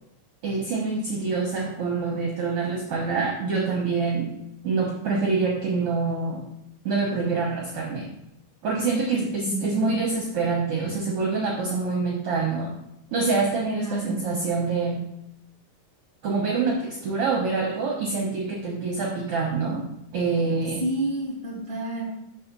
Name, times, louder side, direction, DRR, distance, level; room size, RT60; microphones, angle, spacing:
voice 1, 0.4-4.3 4.6-6.4 6.8-8.1 8.6-12.7 13.1-15.0 16.2-19.8 20.1-20.8, right 4 dB, 65° right, -2 dB, 1.5 m, -26 dB
voice 2, 13.8-14.2 20.8-22.0, right 1 dB, 10° left, -6 dB, 1.8 m, -29 dB
5.1 x 4.8 x 5.9 m, 0.81 s
omnidirectional pair, 3.6 m